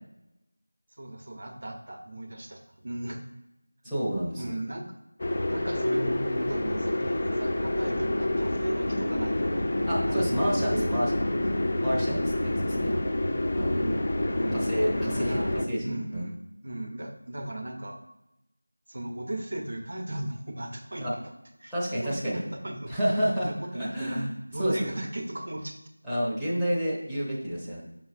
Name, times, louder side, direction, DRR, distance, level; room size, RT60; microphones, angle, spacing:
voice 1, 1.0-3.2 4.4-4.8 5.5-10.9 14.4-14.7 14.9-15.5 15.8-16.4 16.6-18.0 18.9-21.2 21.6-22.9 23.4-25.8, right 1 dB, 55° right, 4 dB, 1.0 m, -36 dB
voice 2, 3.8-4.5 9.9-11.1 11.8-12.9 13.6-14.0 14.5-15.4 15.7-16.2 21.0-21.1 21.7-22.4 22.9-24.3 24.6-24.9 26.0-27.8, equal, ahead, -15 dB, 0.8 m, -29 dB
sound 1, 5.2-15.7, left 1 dB, 40° left, 0.7 m, -28 dB
7.9 x 5.9 x 2.6 m, 0.90 s
figure-of-eight pair, 175°, 0 cm